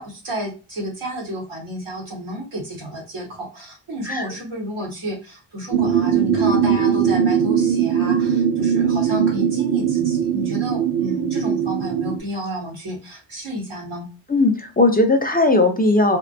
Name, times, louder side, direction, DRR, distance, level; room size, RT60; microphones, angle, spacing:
voice 1, 0.0-14.1, equal, 80° right, -1 dB, 1.2 m, -31 dB
sound 1, 5.7-12.2, right 8 dB, 50° right, 0.6 m, -20 dB
voice 2, 14.3-16.2, left 2 dB, 20° left, 6 dB, 0.4 m, -17 dB
2.6 x 2.1 x 2.6 m, 0.34 s
cardioid pair, 55°, 48 cm